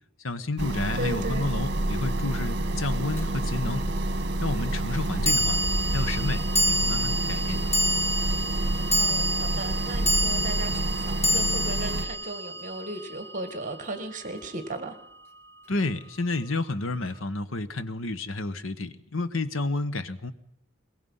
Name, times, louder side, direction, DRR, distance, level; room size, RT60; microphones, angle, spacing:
voice 1, 0.2-3.9 4.4-5.6 5.9-7.7 15.7-20.3, left 2 dB, 75° left, 13 dB, 1.2 m, -30 dB
sound 1, 0.6-12.1, right 1 dB, 55° right, 1.4 m, -28 dB
voice 2, 0.9-1.5 9.0-15.0, right 2 dB, 40° right, 8 dB, 1.8 m, -36 dB
sound 2, 3.2-3.3 5.3-13.7, equal, 15° left, 2.4 m, -28 dB
23.0 x 21.0 x 5.6 m, 0.77 s
head